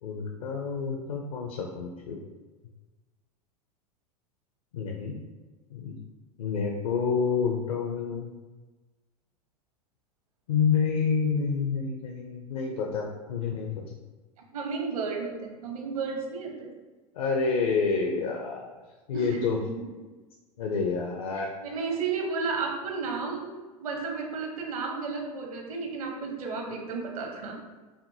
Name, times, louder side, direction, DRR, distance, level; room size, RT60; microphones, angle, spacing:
voice 1, 0.0-2.2 4.7-5.1 5.7-6.0 6.4-8.3 10.5-14.0 17.1-18.8 19.1-19.6 20.6-21.5, left 5 dB, 65° left, 1 dB, 0.6 m, -28 dB
voice 2, 14.5-16.7 19.1-19.9 21.4-23.5 23.8-27.6, right 4 dB, 65° right, 1 dB, 0.9 m, -33 dB
5.0 x 2.6 x 2.7 m, 1.3 s
figure-of-eight pair, 90°, 20 cm